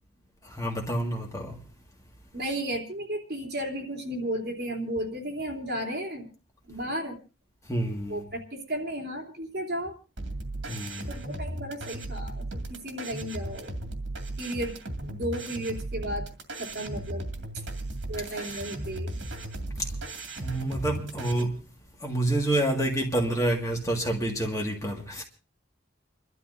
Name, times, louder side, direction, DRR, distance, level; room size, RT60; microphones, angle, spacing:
voice 1, 0.4-1.6 7.7-8.3 10.7-11.1 18.4-18.6 19.8-19.9 20.4-21.6 22.0-25.2, right 1 dB, 15° left, 1.8 m, -28 dB
voice 2, 2.3-6.3 6.7-7.2 8.1-9.9 11.1-13.8 14.4-14.7 15.0-16.3 16.6-17.3 18.1-19.2, right 1 dB, 55° right, 3.1 m, -34 dB
sound 1, 10.2-21.4, right 1 dB, 80° right, 2.2 m, -36 dB
30.0 x 12.5 x 2.6 m
head